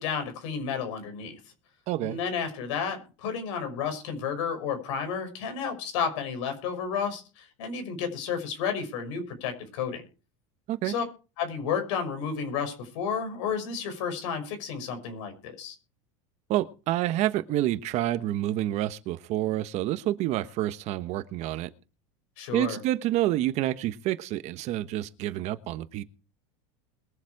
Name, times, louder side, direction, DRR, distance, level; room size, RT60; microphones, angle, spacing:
voice 1, 0.0-1.4 2.0-10.0 10.8-11.0 11.4-15.8 22.4-22.8, left 6 dB, 75° left, 5.8 m, -32 dB
voice 2, 1.9-2.2 10.7-10.9 16.5-21.7 22.5-26.0, right 14 dB, 45° right, 1.2 m, -28 dB
21.5 x 7.4 x 4.8 m
supercardioid pair, 140°, 16 cm